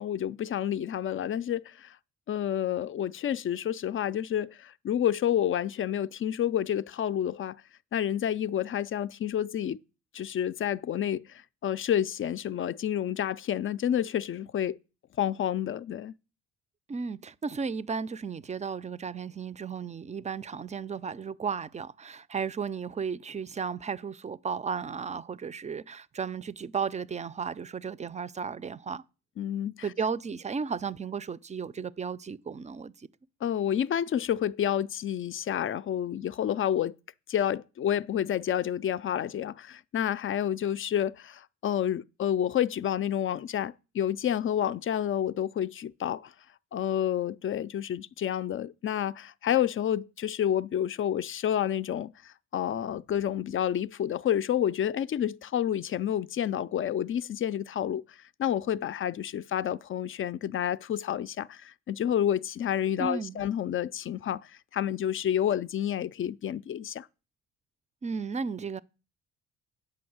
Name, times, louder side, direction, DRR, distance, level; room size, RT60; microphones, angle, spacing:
voice 1, 0.0-2.0 2.3-7.6 7.9-9.8 10.1-14.8 15.2-16.1 29.4-29.7 33.4-37.0 37.3-46.3 46.7-67.1, left 10 dB, 45° left, 0.4 m, -29 dB
voice 2, 16.9-29.0 29.8-33.1 63.0-63.4 68.0-68.8, right 6 dB, 25° right, 0.5 m, -34 dB
8.6 x 5.3 x 7.9 m
cardioid pair, 90°, 30 cm